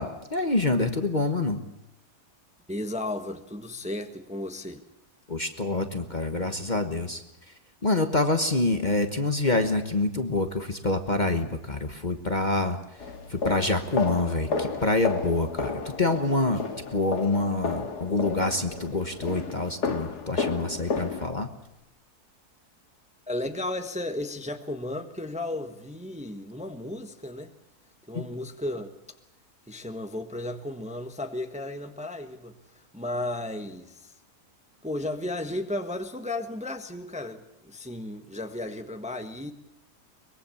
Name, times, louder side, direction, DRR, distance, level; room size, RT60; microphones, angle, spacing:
voice 1, 0.0-1.6 5.3-7.2 7.8-16.7 16.9-21.5 28.1-28.3, left 2 dB, 30° left, 7 dB, 1.4 m, -26 dB
voice 2, 2.7-4.8 23.3-27.5 28.1-28.9 29.7-34.1 34.8-39.5, left 1 dB, 5° right, 7 dB, 1.2 m, -34 dB
sound 1, 13.0-21.3, left 4 dB, 90° left, 2.5 m, -32 dB
23.5 x 21.5 x 7.2 m, 0.87 s
omnidirectional pair, 1.7 m